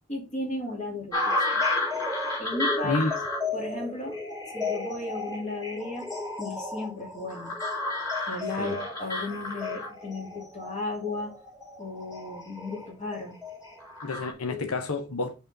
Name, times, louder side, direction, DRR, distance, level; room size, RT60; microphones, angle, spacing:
voice 1, 0.1-1.6 2.4-3.0 3.5-4.2 4.5-6.1 6.4-7.5 8.3-11.3 11.8-13.3 14.5-14.7, left 2 dB, 35° left, 2.5 m, -34 dB
sound 1, 1.1-14.3, left 2 dB, 15° left, 3.2 m, -32 dB
voice 2, 2.8-3.2 8.6-8.8 14.0-15.3, left 3 dB, 85° left, 0.9 m, -29 dB
5.7 x 4.4 x 5.2 m
head